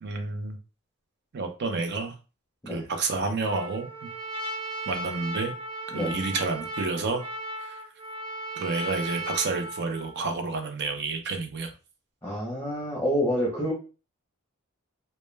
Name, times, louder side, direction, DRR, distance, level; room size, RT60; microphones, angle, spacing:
voice 1, 0.0-0.6 1.3-2.1 2.7-4.1 4.9-5.5 5.9-7.2 7.6-7.8 8.6-11.7, right 3 dB, 55° right, 5 dB, 0.5 m, -30 dB
Trumpet, 3.4-10.2, right 1 dB, 25° right, 1.1 m, -36 dB
voice 2, 12.2-13.7, equal, 10° left, -4 dB, 0.6 m, -28 dB
2.1 x 2.1 x 3.1 m, 0.33 s
head